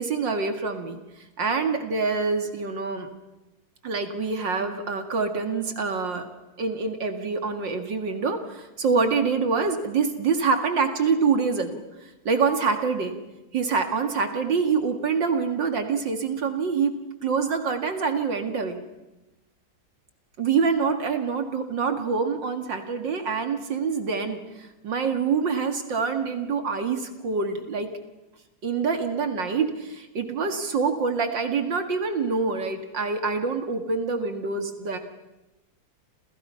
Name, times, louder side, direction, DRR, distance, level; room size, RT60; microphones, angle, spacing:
voice 1, 0.0-3.1 3.8-6.3 6.6-11.8 12.3-13.2 13.5-17.0 17.2-18.8 20.4-27.9 28.6-35.0, right 5 dB, 65° right, 7 dB, 2.7 m, -26 dB
29.0 x 28.5 x 5.7 m, 1.0 s
omnidirectional pair, 2.2 m